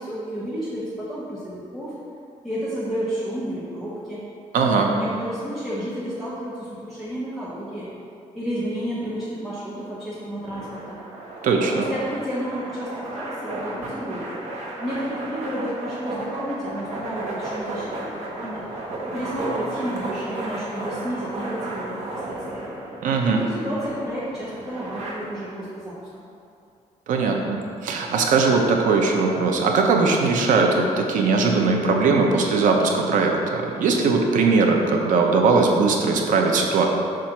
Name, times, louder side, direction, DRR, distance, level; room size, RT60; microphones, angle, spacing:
voice 1, 0.0-1.9 2.4-4.2 4.9-7.9 8.3-11.0 11.7-14.4 14.8-18.7 19.0-22.6 23.3-26.0, equal, ahead, -11 dB, 1.1 m, -31 dB
voice 2, 4.5-4.9 11.4-11.8 23.0-23.4 27.1-36.9, right 4 dB, 80° right, 1 dB, 0.8 m, -20 dB
sound 1, 10.4-25.1, right 2 dB, 60° right, 1.1 m, -33 dB
7.5 x 2.6 x 5.8 m, 2.5 s
cardioid pair, 145°, 13 cm